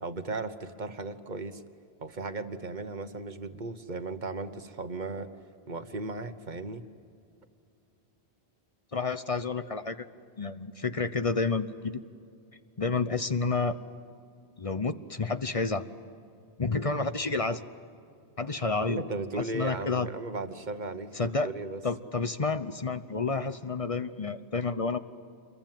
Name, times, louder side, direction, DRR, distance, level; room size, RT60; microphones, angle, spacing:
voice 1, 0.0-1.6 2.0-5.3 5.7-6.8 18.8-21.8, right 3 dB, 45° right, 9 dB, 1.3 m, -36 dB
voice 2, 8.9-10.1 10.4-12.0 12.8-13.8 14.6-15.8 16.6-17.6 18.4-19.0 19.4-20.1 21.1-21.5 21.8-25.0, left 4 dB, 35° left, 11 dB, 0.8 m, -30 dB
27.0 x 22.5 x 9.1 m, 2.6 s
omnidirectional pair, 1.1 m